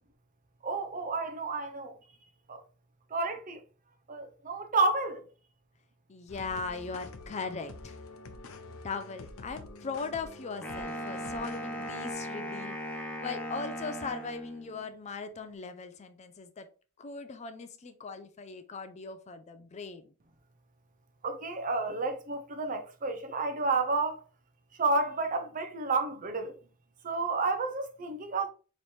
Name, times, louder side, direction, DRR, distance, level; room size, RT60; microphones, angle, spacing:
voice 1, 0.6-2.0 2.5-2.6 3.1-3.6 4.1-5.2 21.2-24.2 24.7-26.5 27.0-28.5, right 3 dB, 40° right, 0.6 m, -30 dB
voice 2, 6.1-8.0 8.8-12.8 13.2-16.7 17.0-20.1, left 4 dB, 35° left, 0.4 m, -39 dB
sound 1, 6.3-12.1, left 2 dB, 90° left, 0.6 m, -47 dB
Wind instrument woodwind instrument, 10.6-14.9, equal, 5° left, 0.7 m, -38 dB
4.2 x 3.0 x 3.2 m
head